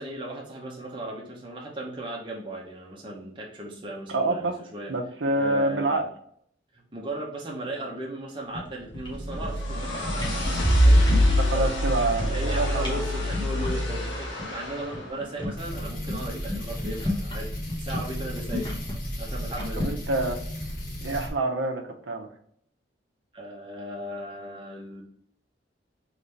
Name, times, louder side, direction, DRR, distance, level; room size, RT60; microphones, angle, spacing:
voice 1, 0.0-4.9 5.4-6.1 6.7-11.7 12.0-17.5 17.8-18.7 19.2-20.0 23.3-25.0, right 1 dB, 25° right, -2 dB, 0.9 m, -37 dB
voice 2, 4.1-4.6 4.9-6.1 11.4-13.0 18.2-18.3 19.8-20.4 21.0-22.3, right 2 dB, 85° right, 4 dB, 0.7 m, -27 dB
sound 1, 8.5-8.7 8.9-9.7 10.0-11.4 11.7-12.5 12.8-13.0 13.3-13.8 14.1-14.2 14.4-14.5 14.8-17.4 17.7-19.9, left 1 dB, 25° left, 1.2 m, -32 dB
sound 2, 8.9-15.0, equal, 80° left, 1.5 m, -24 dB
sound 3, 15.6-21.3, equal, 50° left, 1.3 m, -34 dB
3.9 x 3.3 x 3.2 m, 0.65 s
head